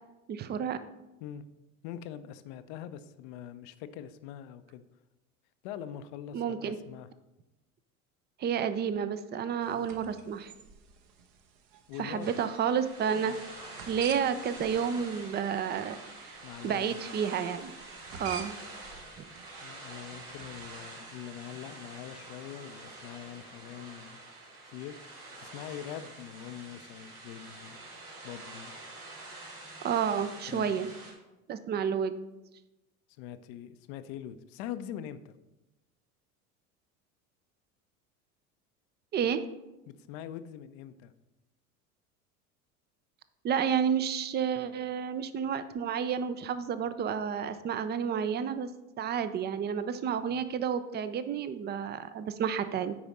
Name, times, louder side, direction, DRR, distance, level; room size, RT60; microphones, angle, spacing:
voice 1, 0.3-0.8 6.3-6.8 8.4-10.5 12.0-13.4 13.9-17.7 18.2-18.5 19.2-19.3 29.8-30.9 31.5-32.2 39.1-39.4 43.4-48.7 49.0-52.9, right 7 dB, 25° right, 12 dB, 0.5 m, -30 dB
voice 2, 1.8-4.8 5.6-7.1 9.7-9.9 11.9-12.3 13.3-13.4 16.4-17.0 19.6-24.2 24.7-25.0 25.4-27.8 28.2-28.7 30.5-30.8 33.2-35.3 39.9-41.1 50.3-50.4, left 10 dB, 50° left, 12 dB, 0.6 m, -43 dB
sound 1, 9.6-21.0, right 6 dB, 50° right, 1.0 m, -49 dB
sound 2, 12.2-31.1, right 2 dB, 85° right, 2.3 m, -47 dB
8.6 x 5.0 x 4.2 m, 0.99 s
figure-of-eight pair, 75°, 44 cm